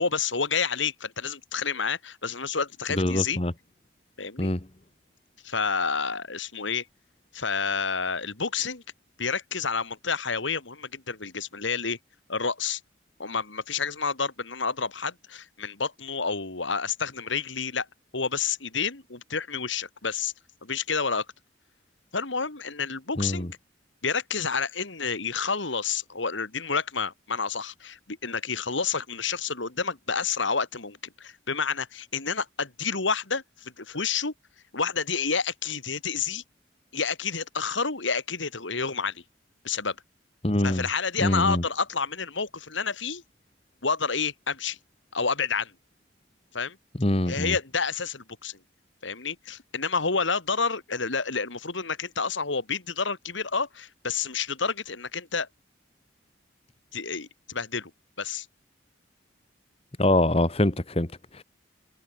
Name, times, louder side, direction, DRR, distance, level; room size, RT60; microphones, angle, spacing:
voice 1, 0.0-3.4 4.2-4.5 5.4-6.9 7.3-8.8 9.2-12.0 12.3-12.8 13.2-17.9 18.1-20.3 20.6-21.3 22.1-23.5 24.0-34.3 34.7-36.4 36.9-39.2 39.6-40.0 40.6-43.2 43.8-44.8 45.1-45.7 46.5-46.8 47.3-48.6 49.0-55.5 56.9-57.9 58.2-58.5, left 5 dB, 75° left, 2.6 m, -29 dB
voice 2, 3.0-3.5 4.4-4.6 23.2-23.5 40.4-40.8 41.2-41.6 47.0-47.5 60.0-61.4, left 1 dB, 30° left, 1.4 m, -24 dB
head